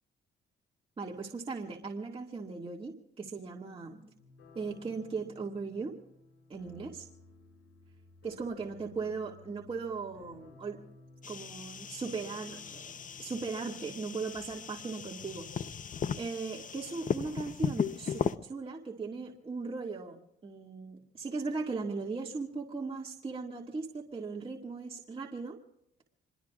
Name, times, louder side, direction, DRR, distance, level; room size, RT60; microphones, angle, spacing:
voice 1, 1.0-4.1 4.5-5.9 6.5-7.1 8.2-10.8 11.3-15.5 15.7-15.9 16.2-25.6, right 4 dB, 30° right, -1 dB, 2.0 m, -38 dB
sound 1, 4.1-14.5, left 3 dB, 90° left, 6.0 m, -57 dB
sound 2, 11.2-18.4, left 7 dB, 40° left, 0.7 m, -37 dB
27.0 x 22.0 x 2.4 m, 0.79 s
cardioid pair, 90°, 20 cm